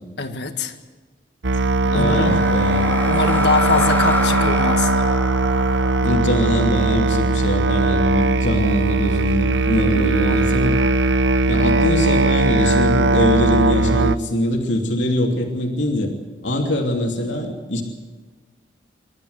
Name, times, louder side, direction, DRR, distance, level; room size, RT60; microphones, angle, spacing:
voice 1, 0.2-0.7 1.9-2.4 3.1-4.9 9.9-10.4, left 3 dB, 70° left, 7 dB, 1.7 m, -23 dB
Musical instrument, 1.4-14.2, right 2 dB, 85° right, 0.8 m, -19 dB
voice 2, 1.8-2.9 6.0-10.8 11.5-16.1 16.4-17.8, left 1 dB, 85° left, 1 dB, 2.9 m, -22 dB
sound 1, 1.8-8.0, left 2 dB, 10° left, 1.1 m, -28 dB
27.0 x 12.5 x 8.1 m, 1.4 s
head